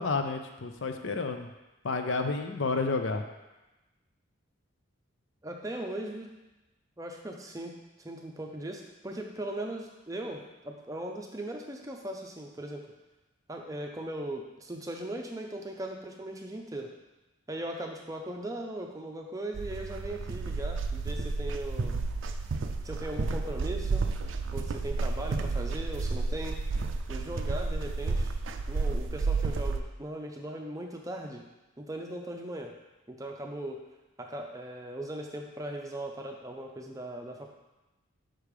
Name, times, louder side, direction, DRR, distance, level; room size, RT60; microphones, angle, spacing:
voice 1, 0.0-1.5 1.8-3.2, left 3 dB, 65° left, 6 dB, 0.6 m, -30 dB
voice 2, 5.4-6.3 7.0-12.9 13.5-16.9 17.5-22.0 22.8-24.0 24.5-26.6 27.1-28.3 28.7-31.5 31.8-32.7 33.1-33.8 34.2-37.5, right 1 dB, 15° right, 2 dB, 0.6 m, -39 dB
sound 1, 19.5-29.8, right 3 dB, 70° right, 0.4 m, -31 dB
6.0 x 5.1 x 4.9 m, 1.0 s
head